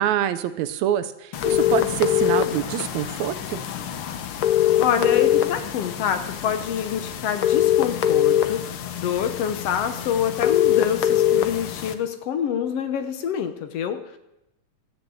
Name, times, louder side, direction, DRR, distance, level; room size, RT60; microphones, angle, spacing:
voice 1, 0.0-3.6, right 11 dB, 75° right, 11 dB, 1.8 m, -25 dB
sound 1, 1.3-11.9, left 11 dB, 90° left, 1.2 m, -23 dB
voice 2, 4.8-14.2, left 8 dB, 65° left, 9 dB, 1.6 m, -26 dB
13.0 x 10.5 x 7.7 m, 0.88 s
omnidirectional pair, 3.7 m